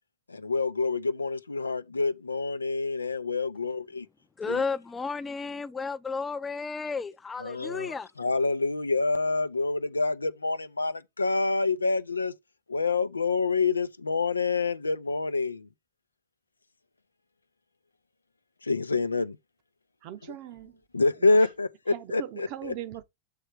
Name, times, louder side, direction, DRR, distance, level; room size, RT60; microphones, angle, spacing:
voice 1, 0.3-4.1 4.5-4.6 7.4-7.9 8.2-12.3 12.7-15.7 18.7-19.4 20.9-22.7, left 3 dB, 85° left, 0.5 m, -27 dB
voice 2, 4.4-8.1, left 4 dB, 15° left, 0.6 m, -33 dB
voice 3, 20.0-20.8 21.2-21.5 21.9-23.0, right 12 dB, 50° right, 0.8 m, -40 dB
7.7 x 3.2 x 4.6 m
figure-of-eight pair, 95°, 0 cm